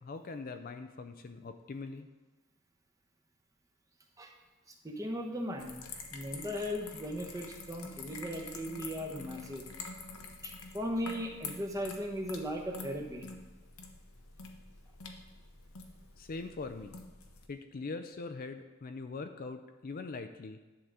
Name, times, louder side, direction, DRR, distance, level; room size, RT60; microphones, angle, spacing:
voice 1, 0.0-2.1 16.2-17.0 17.5-20.6, left 3 dB, 40° left, 8 dB, 0.4 m, -42 dB
voice 2, 4.7-5.8 6.1-9.6 10.4-13.3, equal, 15° right, 1 dB, 0.9 m, -37 dB
sound 1, 5.6-17.5, left 4 dB, 90° left, 0.9 m, -47 dB
10.5 x 3.8 x 6.3 m, 1.2 s
head